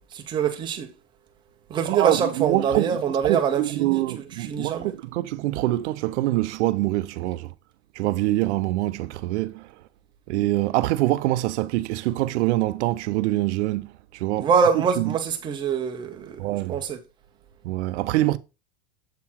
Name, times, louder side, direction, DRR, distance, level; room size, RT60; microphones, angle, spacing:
voice 1, 0.1-0.9 1.7-4.0 4.4-4.9 14.4-17.0, right 7 dB, 15° right, 0.6 m, -24 dB
voice 2, 1.9-7.5 8.0-9.7 10.3-14.5 14.7-15.1 16.4-16.8 17.6-18.4, right 17 dB, 85° right, 0.6 m, -25 dB
7.5 x 3.8 x 4.4 m
supercardioid pair, 175°, 34 cm